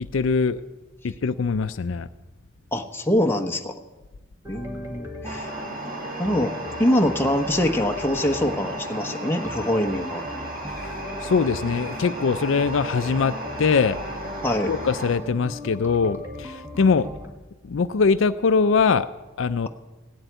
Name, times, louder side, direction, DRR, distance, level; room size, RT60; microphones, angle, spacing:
voice 1, 0.1-0.6 1.0-2.1 10.7-14.0 14.7-17.1 17.6-19.1 19.4-19.7, left 5 dB, 65° left, 12 dB, 0.4 m, -22 dB
voice 2, 2.7-3.8 4.5-5.5 6.2-10.2 14.4-14.7, left 1 dB, 10° left, 4 dB, 1.0 m, -24 dB
sound 1, 4.4-17.3, left 1 dB, 15° right, 1.8 m, -38 dB
sound 2, 5.3-15.2, right 1 dB, 45° right, 2.3 m, -35 dB
16.5 x 7.9 x 9.1 m, 1.2 s
head